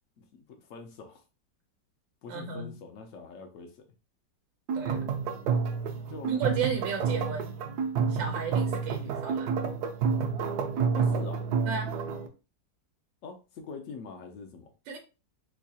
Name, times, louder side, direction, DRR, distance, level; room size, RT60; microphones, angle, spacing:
voice 1, 0.2-1.2 2.2-3.9 5.9-6.8 10.9-11.5 13.2-14.7, left 4 dB, 80° left, 0.7 m, -44 dB
voice 2, 2.3-2.7 4.7-5.0 6.3-7.6 8.1-9.5 11.6-11.9 14.9-15.0, right 6 dB, 85° right, 1.4 m, -33 dB
sound 1, 4.7-12.3, right 5 dB, 70° right, 1.0 m, -29 dB
4.4 x 2.3 x 2.7 m
omnidirectional pair, 2.0 m